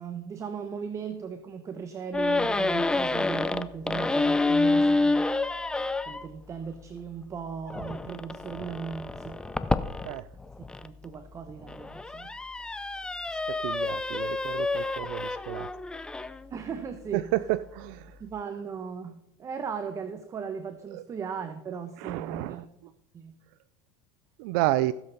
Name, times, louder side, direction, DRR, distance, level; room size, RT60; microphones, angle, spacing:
voice 1, 0.0-5.2 6.1-9.4 10.8-12.3 16.5-17.3 18.2-23.3, right 6 dB, 25° right, 9 dB, 0.9 m, -37 dB
sound 1, 2.1-6.3 7.7-10.9 11.5-16.4, left 2 dB, 5° left, 0.4 m, -28 dB
voice 2, 13.3-15.7 17.1-18.2 20.9-21.0 22.0-22.7 24.4-24.9, right 16 dB, 65° right, 15 dB, 0.4 m, -31 dB
16.5 x 7.8 x 4.0 m, 0.86 s
supercardioid pair, 125°, 12 cm